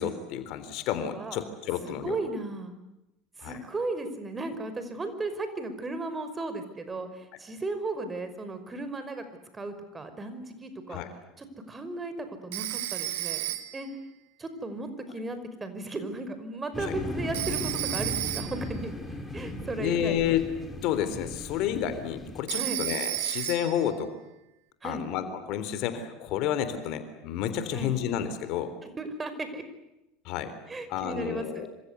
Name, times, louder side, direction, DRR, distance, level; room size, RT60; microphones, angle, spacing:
voice 1, 0.0-2.2 3.4-3.6 10.9-11.1 16.8-16.9 19.8-20.4 20.8-24.1 24.8-28.7 30.3-30.5 30.9-31.7, left 10 dB, 55° left, 11 dB, 3.8 m, -30 dB
voice 2, 1.1-1.5 1.8-2.7 3.4-9.2 9.5-11.0 11.4-13.9 14.4-18.9 19.3-20.4 22.6-22.8 24.8-25.0 27.7-27.9 29.0-29.6 30.7-31.7, right 2 dB, 20° right, 10 dB, 5.4 m, -35 dB
Telephone, 12.5-13.9 17.3-18.7 22.5-23.9, right 16 dB, 70° right, 1.7 m, -32 dB
sound 1, 16.7-22.4, left 1 dB, 15° left, 6.5 m, -37 dB
27.5 x 26.0 x 8.3 m, 0.91 s
hypercardioid pair, 80°, 0 cm